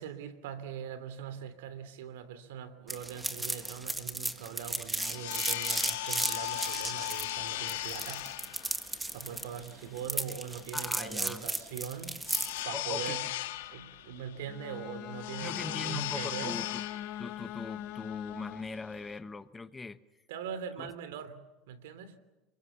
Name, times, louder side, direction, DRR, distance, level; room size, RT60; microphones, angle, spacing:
voice 1, 0.0-8.3 9.1-12.2 12.6-13.2 13.7-16.6 20.3-22.2, right 8 dB, 85° right, 13 dB, 3.1 m, -41 dB
sound 1, 2.9-12.6, right 2 dB, 10° right, 1.7 m, -35 dB
sound 2, 4.6-19.2, left 16 dB, 90° left, 1.7 m, -38 dB
voice 2, 10.7-11.5 12.7-13.3 15.4-16.8 17.2-20.0 20.8-20.9, left 4 dB, 15° left, 13 dB, 1.1 m, -41 dB
Bowed string instrument, 14.4-18.9, left 12 dB, 50° left, 0.9 m, -42 dB
30.0 x 22.0 x 7.2 m, 1.1 s
supercardioid pair, 120°, 0 cm